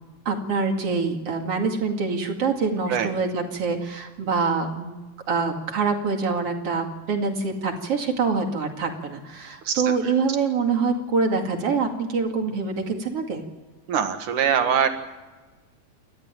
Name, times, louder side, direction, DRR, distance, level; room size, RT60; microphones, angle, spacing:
voice 1, 0.2-5.0 5.3-13.4, right 4 dB, 50° right, 3 dB, 3.3 m, -25 dB
voice 2, 13.9-14.9, right 8 dB, 85° right, 7 dB, 3.2 m, -22 dB
29.0 x 13.0 x 9.1 m, 1.3 s
omnidirectional pair, 3.4 m